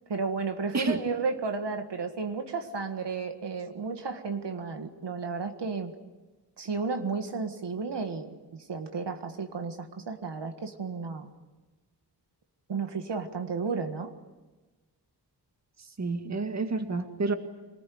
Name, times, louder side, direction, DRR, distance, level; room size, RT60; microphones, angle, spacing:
voice 1, 0.1-5.9 6.6-11.3 12.7-14.1, right 4 dB, 80° right, 6 dB, 1.8 m, -33 dB
voice 2, 15.8-17.3, right 3 dB, 40° right, 7 dB, 1.9 m, -29 dB
26.0 x 19.5 x 9.4 m, 1.2 s
wide cardioid pair, 135°, 41 cm